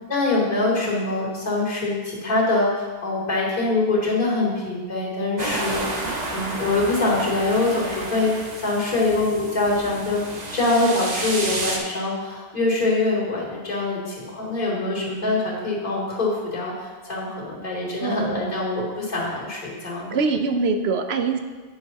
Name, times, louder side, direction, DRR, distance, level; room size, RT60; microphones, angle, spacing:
voice 1, 0.1-5.8 6.3-10.2 10.5-20.1, left 2 dB, 40° left, -9 dB, 3.3 m, -24 dB
sound 1, 5.4-11.8, right 2 dB, 40° right, 1.1 m, -31 dB
voice 2, 18.0-18.5 20.1-21.4, right 4 dB, 70° right, 6 dB, 1.0 m, -23 dB
10.5 x 9.5 x 2.9 m, 1.4 s
omnidirectional pair, 1.1 m